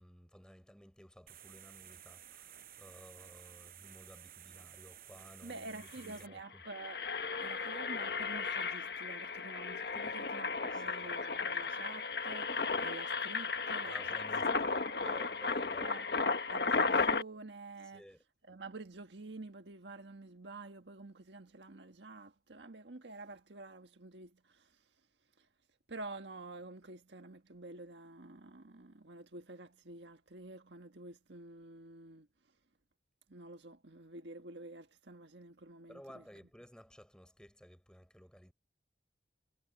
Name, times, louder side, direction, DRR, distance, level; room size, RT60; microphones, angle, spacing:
voice 1, 0.0-6.6 9.9-10.1 10.7-11.2 13.8-16.0 17.9-18.2 35.9-38.5, equal, 5° left, 6.8 m, -55 dB
sound 1, 1.3-6.3, right 11 dB, 55° right, 6.4 m, -54 dB
voice 2, 5.4-7.1 7.4-14.0 14.4-15.1 15.8-16.1 16.5-18.0 18.5-24.8 25.4-25.5 25.9-32.3 33.3-36.2, right 2 dB, 90° right, 1.6 m, -49 dB
Engine, 5.5-5.6 5.8-6.1 6.5-17.2, left 4 dB, 70° left, 1.4 m, -34 dB
head